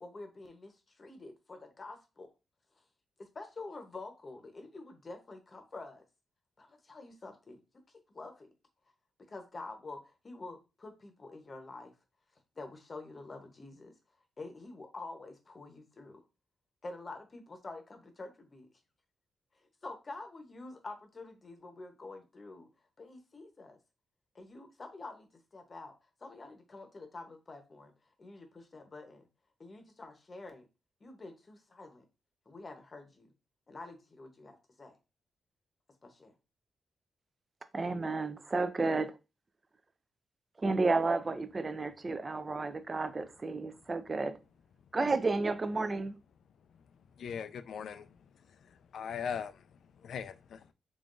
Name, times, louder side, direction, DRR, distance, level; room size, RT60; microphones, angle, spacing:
voice 1, 0.0-2.3 3.2-6.0 6.6-7.6 8.1-8.5 9.3-11.9 12.6-13.9 14.4-16.2 16.8-18.7 19.8-22.7 23.0-23.8 24.3-25.9 26.2-27.9 28.2-29.3 29.6-30.7 31.0-32.0 32.5-33.3 33.7-34.9 36.0-36.3, left 3 dB, 30° left, 0.8 m, -47 dB
voice 2, 37.7-39.1 40.6-44.3 44.9-46.2, right 3 dB, 30° right, 0.4 m, -31 dB
voice 3, 47.2-50.7, left 7 dB, 70° left, 0.3 m, -41 dB
3.8 x 3.4 x 2.5 m
cardioid pair, 120°, 0 cm